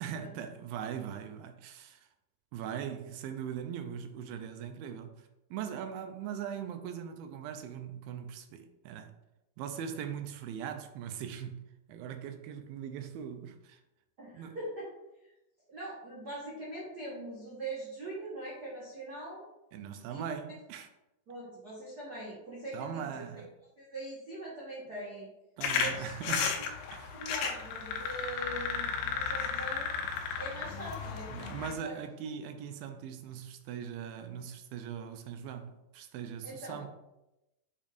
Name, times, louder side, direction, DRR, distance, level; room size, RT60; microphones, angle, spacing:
voice 1, 0.0-2.0 2.5-9.1 9.6-11.6 11.9-13.8 14.3-14.6 19.7-20.9 22.7-23.5 25.6-26.6 26.9-27.2 31.3-36.9, right 8 dB, 85° right, 2.4 m, -40 dB
voice 2, 14.2-14.9 15.7-19.4 20.1-20.2 21.3-23.3 23.8-25.3 25.7-26.7 27.1-29.9 30.4-32.0 36.4-36.8, right 1 dB, 55° right, 1.0 m, -42 dB
sound 1, 25.6-31.7, left 6 dB, 90° left, 2.5 m, -34 dB
7.2 x 2.6 x 5.0 m
omnidirectional pair, 4.1 m